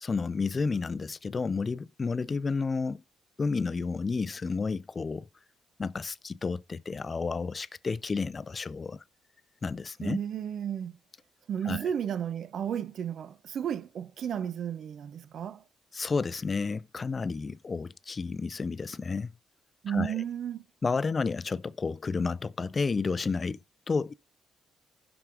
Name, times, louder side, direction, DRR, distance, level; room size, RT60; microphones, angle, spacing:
voice 1, 0.0-3.0 3.4-5.3 5.8-9.0 9.6-10.2 11.7-11.8 15.9-19.3 19.9-20.2 20.8-23.6 23.9-24.1, left 4 dB, 35° left, 0.4 m, -31 dB
voice 2, 10.0-10.9 11.5-15.6 19.8-20.6, right 9 dB, 60° right, 0.5 m, -33 dB
16.0 x 6.0 x 2.5 m
cardioid pair, 90°, 0 cm